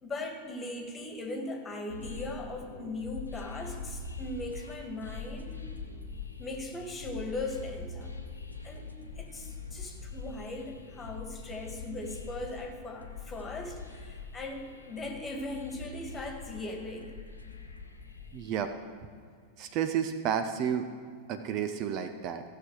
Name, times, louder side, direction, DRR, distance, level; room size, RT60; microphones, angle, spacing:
voice 1, 0.0-5.6 6.4-8.1 8.4-8.9 9.2-17.1, left 2 dB, 20° left, 4 dB, 1.7 m, -39 dB
sound 1, 1.9-18.6, left 4 dB, 85° left, 1.0 m, -43 dB
voice 2, 18.3-18.7 19.6-20.9 21.3-22.4, right 8 dB, 40° right, 8 dB, 0.6 m, -31 dB
15.5 x 6.9 x 4.7 m, 2.1 s
figure-of-eight pair, 90°, 0 cm